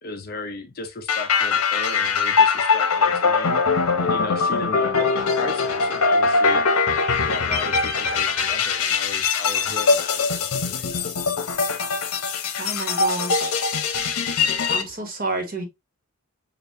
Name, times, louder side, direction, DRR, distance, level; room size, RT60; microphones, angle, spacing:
voice 1, 0.0-6.6 7.2-11.1, left 3 dB, 40° left, 0.6 m, -36 dB
sound 1, 1.1-14.8, left 4 dB, 85° left, 0.8 m, -22 dB
voice 2, 12.6-13.6 14.7-15.6, right 3 dB, 40° right, 1.3 m, -29 dB
6.5 x 2.5 x 2.6 m
head